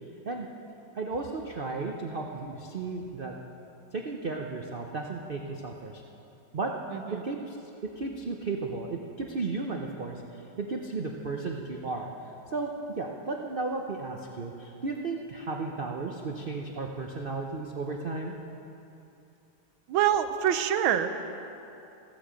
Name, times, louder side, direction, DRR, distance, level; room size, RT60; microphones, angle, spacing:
voice 1, 0.9-3.3 3.9-6.0 6.5-6.7 7.2-7.6 7.8-12.1 12.5-12.7 13.0-18.3, right 3 dB, 65° right, 1 dB, 0.5 m, -34 dB
voice 2, 6.9-7.2 19.9-21.1, right 10 dB, 85° right, 10 dB, 1.5 m, -25 dB
15.0 x 13.5 x 5.1 m, 2.8 s
omnidirectional pair, 2.1 m